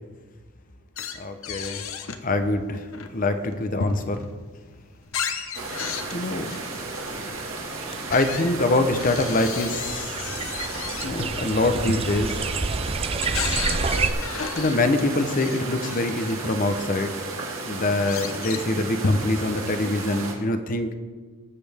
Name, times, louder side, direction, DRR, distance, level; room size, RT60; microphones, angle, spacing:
sound 1, 1.0-2.3 2.7-4.4 4.8-7.4 8.0-16.3 16.9-17.0 17.2-19.6, left 4 dB, 70° left, 0.9 m, -33 dB
voice 1, 1.2-1.9 2.2-4.3 6.1-6.5 7.1-7.4 8.1-10.2 11.0-12.4 14.6-17.1 17.6-20.9, left 2 dB, 40° left, 8 dB, 0.8 m, -25 dB
sound 2, 5.5-20.3, right 3 dB, 65° right, 2.0 m, -34 dB
sound 3, 7.1-7.2 7.8-14.1, right 4 dB, 25° right, 0.4 m, -29 dB
19.0 x 7.7 x 3.5 m, 1.4 s
head